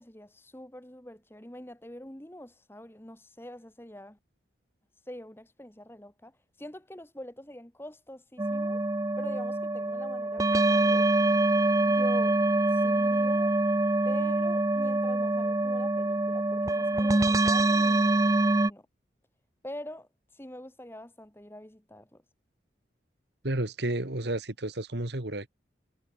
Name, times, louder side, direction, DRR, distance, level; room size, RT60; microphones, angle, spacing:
voice 1, 0.0-4.2 5.0-8.8 9.2-11.1 11.8-12.4 12.7-13.5 14.0-18.9 19.6-22.2, left 1 dB, 10° left, 1.3 m, -45 dB
sound 1, 8.4-18.7, right 2 dB, 20° right, 0.5 m, -25 dB
voice 2, 23.4-25.5, right 1 dB, 65° right, 2.0 m, -31 dB
head